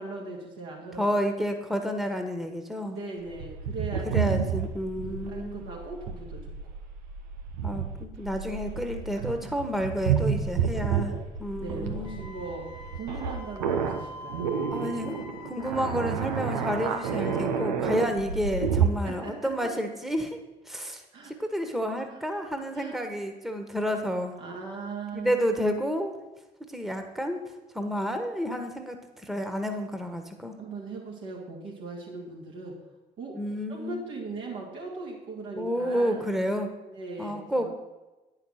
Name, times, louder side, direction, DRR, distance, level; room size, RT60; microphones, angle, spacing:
voice 1, 0.0-1.0 2.8-4.1 5.0-6.5 9.2-9.5 11.6-14.5 18.0-18.2 19.0-19.7 21.1-21.3 22.1-22.2 22.7-23.0 24.4-25.4 30.6-32.8 33.2-33.4 33.7-36.2 36.9-37.7, right 3 dB, 70° right, -2 dB, 2.5 m, -39 dB
voice 2, 1.0-3.0 4.1-5.6 7.6-11.1 11.4-12.2 14.7-20.4 20.7-24.4 25.1-26.2 26.7-27.4 27.7-29.0 29.2-30.5 33.3-34.0 35.6-36.7 37.2-37.7, equal, ahead, 5 dB, 1.4 m, -30 dB
sound 1, 3.3-18.9, right 7 dB, 85° right, 0.7 m, -30 dB
Wind instrument woodwind instrument, 12.0-17.7, left 1 dB, 85° left, 0.8 m, -45 dB
9.5 x 5.7 x 6.5 m, 1.1 s
hypercardioid pair, 40°, 21 cm